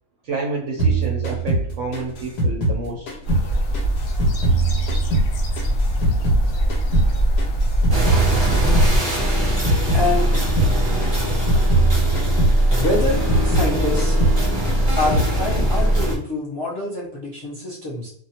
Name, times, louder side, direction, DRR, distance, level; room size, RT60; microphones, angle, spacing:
voice 1, 0.2-3.1, right 3 dB, 65° right, -1 dB, 0.8 m, -29 dB
sound 1, 0.8-3.5 3.7-6.4 6.7-10.1 10.3-10.7 11.0-13.7 14.0-14.4 14.6-15.3, right 2 dB, 85° left, 1.3 m, -22 dB
sound 2, 3.2-9.0, right 1 dB, 70° left, 0.9 m, -21 dB
sound 3, 7.9-16.2, right 1 dB, 25° right, 0.7 m, -20 dB
voice 2, 9.9-10.3 12.7-14.2 15.0-18.1, left 2 dB, 35° left, -6 dB, 0.3 m, -26 dB
2.5 x 2.4 x 2.8 m, 0.64 s
omnidirectional pair, 1.6 m